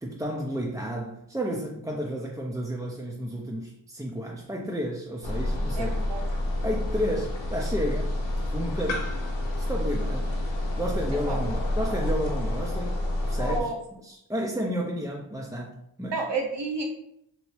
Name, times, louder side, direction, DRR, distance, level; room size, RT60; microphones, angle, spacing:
voice 1, 0.0-6.1 6.6-8.1 8.5-9.1 9.6-10.3 10.8-13.0 13.3-13.7 14.0-16.2, equal, 10° right, -2 dB, 0.4 m, -32 dB
sound 1, 5.2-13.6, left 1 dB, 75° left, 0.7 m, -29 dB
voice 2, 5.8-6.2 11.3-11.4 13.4-13.8 16.1-16.8, right 3 dB, 65° right, 1 dB, 0.9 m, -30 dB
3.0 x 2.7 x 3.0 m, 0.75 s
cardioid pair, 40°, 46 cm